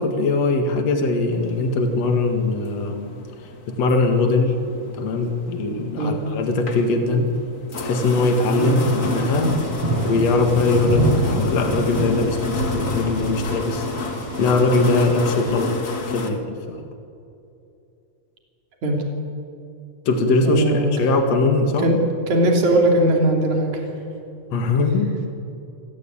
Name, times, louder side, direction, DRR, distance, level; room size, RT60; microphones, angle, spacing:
voice 1, 0.0-3.1 3.7-4.6 5.0-7.3 7.8-9.6 10.0-13.9 14.4-15.8 16.1-16.8 20.1-21.9 24.5-25.3, left 3 dB, 60° left, 5 dB, 3.1 m, -21 dB
sound 1, 1.3-16.3, left 4 dB, 35° left, 1.5 m, -32 dB
sound 2, 8.9-15.6, right 2 dB, 55° right, 4.1 m, -27 dB
voice 2, 20.4-20.9 21.8-22.0 22.3-23.9, right 1 dB, 75° right, 1 dB, 4.3 m, -19 dB
28.0 x 17.0 x 8.8 m, 2.7 s
omnidirectional pair, 3.4 m